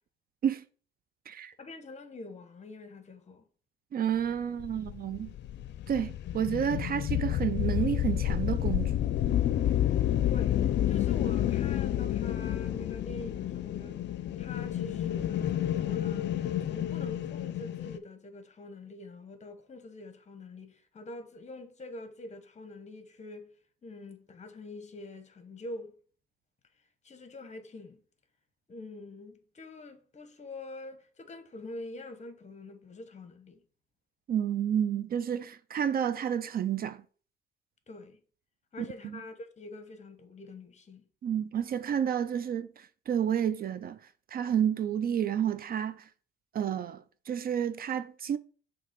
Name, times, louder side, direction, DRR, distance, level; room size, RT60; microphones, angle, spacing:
voice 1, 1.6-3.4 10.3-14.0 14.4-23.5 23.8-26.0 27.0-28.0 28.7-33.6 37.9-38.2 38.7-41.0, left 2 dB, 35° left, 1.0 m, -45 dB
voice 2, 3.9-5.3 5.9-9.0 34.3-37.0 38.8-38.9 41.2-44.0 44.3-46.1 46.5-48.4, right 9 dB, 50° right, 0.4 m, -30 dB
sound 1, 4.6-18.0, left 12 dB, 60° left, 0.5 m, -30 dB
6.6 x 2.9 x 5.1 m
cardioid pair, 90°, 20 cm